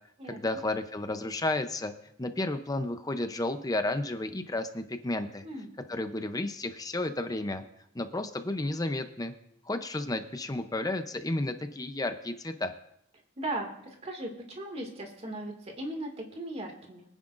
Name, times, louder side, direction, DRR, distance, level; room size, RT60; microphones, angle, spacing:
voice 1, 0.3-1.9 2.2-5.4 5.9-7.6 7.9-9.3 9.6-12.7, left 2 dB, 20° left, 8 dB, 0.7 m, -32 dB
voice 2, 13.4-13.7 14.0-17.0, right 1 dB, 35° right, 2 dB, 2.1 m, -37 dB
23.5 x 10.0 x 2.6 m, 0.76 s
head